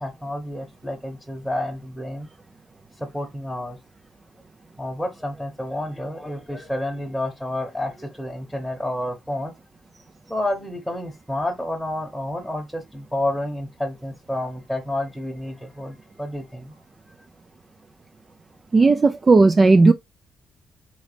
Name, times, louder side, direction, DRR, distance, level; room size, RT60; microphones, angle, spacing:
voice 1, 0.0-2.3 3.0-3.8 4.8-9.5 10.3-16.7, left 1 dB, ahead, 0.9 m, -30 dB
voice 2, 18.7-19.9, right 3 dB, 30° right, 0.3 m, -14 dB
4.0 x 3.1 x 3.2 m
cardioid pair, 90°, 0 cm